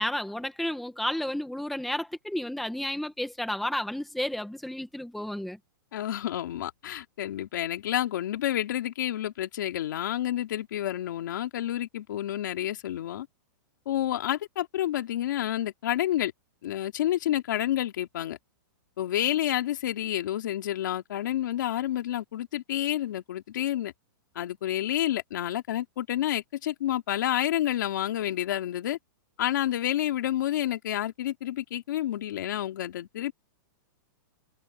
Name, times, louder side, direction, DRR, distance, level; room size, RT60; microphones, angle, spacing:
voice 1, 0.0-5.6, left 1 dB, ahead, 1.3 m, -32 dB
voice 2, 5.9-13.3 13.9-16.3 16.6-18.4 19.0-23.9 24.3-29.0 29.4-33.3, left 12 dB, 65° left, 2.8 m, -29 dB
supercardioid pair, 165°, 11 cm